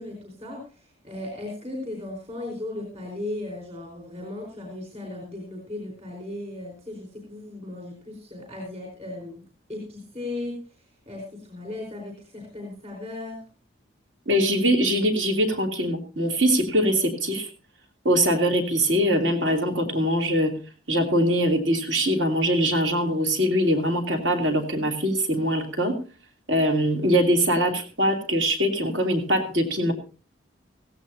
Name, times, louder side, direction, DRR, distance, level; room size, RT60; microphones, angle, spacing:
voice 1, 0.0-9.4 9.7-10.6 11.1-13.4, left 2 dB, 35° right, 0 dB, 4.5 m, -36 dB
voice 2, 14.3-17.5 18.0-20.5 20.9-26.0 26.5-29.9, equal, 70° right, 3 dB, 2.9 m, -22 dB
16.5 x 16.5 x 2.8 m, 0.35 s
head